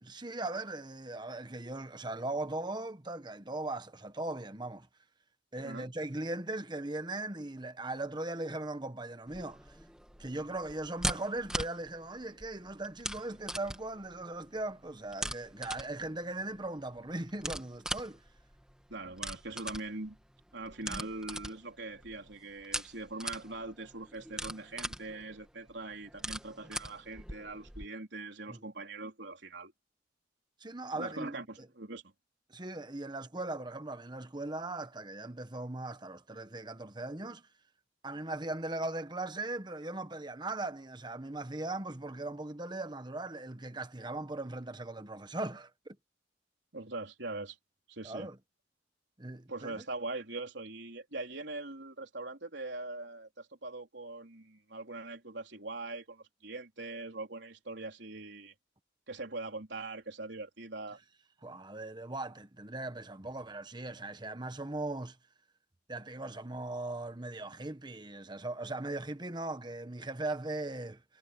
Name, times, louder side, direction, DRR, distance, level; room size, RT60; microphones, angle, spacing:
voice 1, 0.0-4.9 5.5-9.8 10.2-18.2 20.9-21.1 28.5-28.6 30.6-31.4 32.5-37.5 38.0-45.7 48.0-48.4 49.2-49.8 61.4-65.2 65.9-71.2, right 2 dB, 25° right, 1.2 m, -39 dB
sound 1, 9.3-27.9, right 1 dB, 5° right, 2.2 m, -42 dB
voice 2, 18.9-20.2 20.5-29.7 30.9-32.0 46.7-47.6 47.9-48.3 49.5-58.5 59.1-61.0, right 2 dB, 70° right, 3.9 m, -42 dB
head